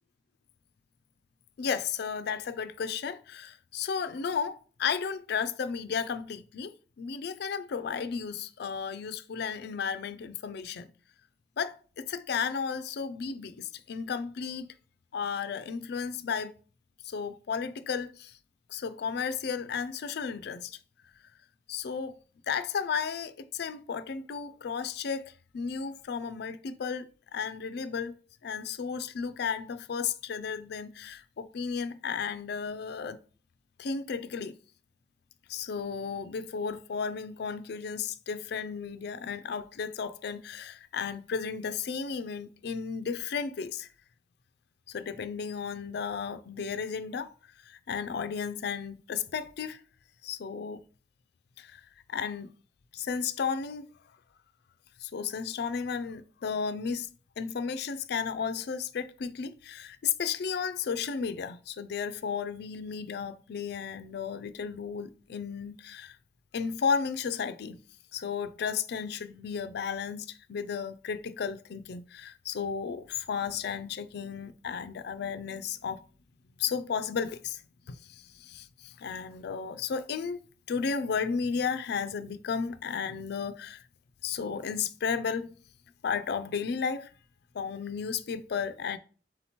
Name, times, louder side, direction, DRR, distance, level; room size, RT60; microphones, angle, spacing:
voice 1, 1.6-10.9 11.6-14.7 15.1-16.5 17.0-18.3 18.7-20.8 21.7-22.2 22.5-27.1 27.3-28.2 28.4-33.2 33.8-34.5 35.5-43.9 44.9-47.3 47.7-49.8 50.2-50.8 51.6-51.8 52.1-52.5 52.9-53.9 55.0-66.2 66.5-67.8 68.1-76.0 76.6-77.6 77.9-80.4 80.7-83.8 84.2-85.5 86.0-87.1 87.5-89.0, left 6 dB, 65° left, 0.4 m, -34 dB
4.2 x 3.8 x 2.9 m
head